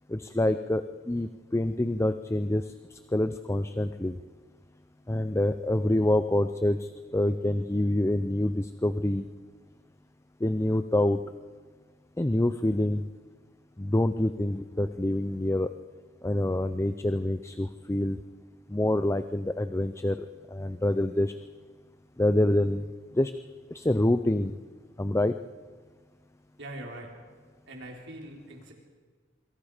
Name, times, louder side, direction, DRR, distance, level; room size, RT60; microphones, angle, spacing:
voice 1, 0.1-4.2 5.1-9.3 10.4-11.2 12.2-13.0 13.8-15.7 16.2-18.2 18.7-21.3 22.2-22.9 23.1-23.3 23.7-24.6 25.0-25.3, left 1 dB, 15° left, 11 dB, 0.6 m, -26 dB
voice 2, 26.6-27.1 27.7-28.7, right 1 dB, 65° right, 0 dB, 4.3 m, -42 dB
27.0 x 25.0 x 5.1 m, 1.5 s
head